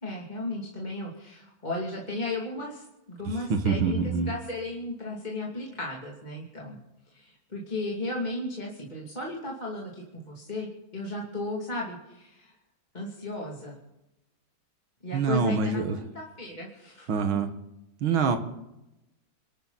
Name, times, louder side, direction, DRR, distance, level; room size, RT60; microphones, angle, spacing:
voice 1, 0.0-4.0 4.3-6.8 7.1-12.5 12.9-13.8 15.0-17.1, left 2 dB, 20° left, -3 dB, 2.8 m, -35 dB
voice 2, 3.5-4.3 15.1-16.0 17.1-17.5 18.0-18.4, right 5 dB, 85° right, 7 dB, 2.3 m, -25 dB
27.5 x 12.5 x 4.1 m, 0.92 s
omnidirectional pair, 2.1 m